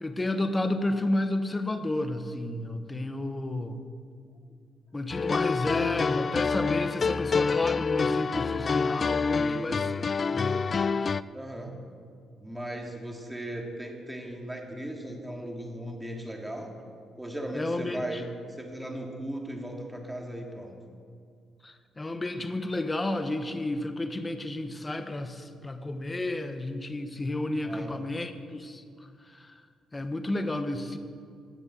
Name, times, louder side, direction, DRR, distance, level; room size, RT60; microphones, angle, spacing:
voice 1, 0.0-3.8 4.9-9.9 10.3-10.7 17.5-18.2 21.6-28.8 29.3-29.5 29.9-31.0, left 1 dB, 20° left, 8 dB, 1.2 m, -31 dB
sound 1, 5.1-11.2, left 5 dB, 40° left, 0.3 m, -27 dB
voice 2, 9.3-9.7 11.3-11.8 12.4-16.7 17.2-18.3 18.6-20.7 27.6-27.9, right 1 dB, 10° right, 1 dB, 2.5 m, -37 dB
17.0 x 7.5 x 7.6 m, 2.3 s
cardioid pair, 90°, 0 cm